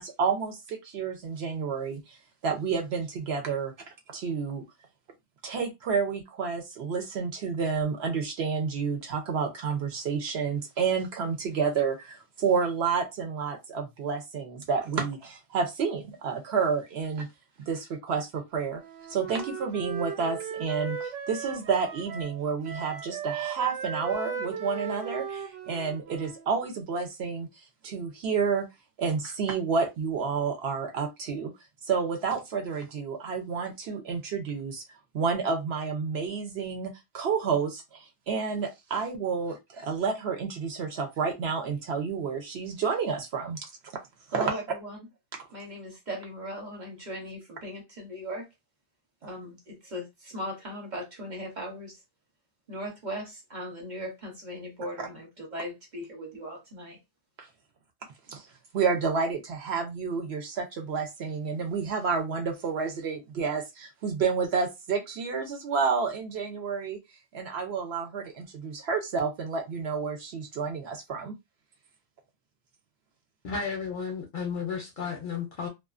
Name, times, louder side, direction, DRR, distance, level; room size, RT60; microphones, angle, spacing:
voice 1, 0.0-2.2 2.4-3.7 4.1-4.6 5.4-17.3 17.7-18.8 19.1-27.5 27.8-28.7 29.0-31.5 31.8-34.8 35.1-43.7 44.3-44.5 55.0-55.1 57.4-57.5 58.3-58.4 58.7-67.0 67.3-71.4, right 5 dB, 65° right, 0.8 m, -30 dB
Wind instrument woodwind instrument, 18.8-22.4 22.6-26.6, right 7 dB, 85° right, 0.9 m, -37 dB
voice 2, 44.3-45.0 45.5-48.5 49.2-52.0 52.7-57.0, equal, 40° right, 1.0 m, -38 dB
voice 3, 73.4-75.7, left 5 dB, 55° left, 0.6 m, -33 dB
2.4 x 2.2 x 2.4 m
omnidirectional pair, 1.2 m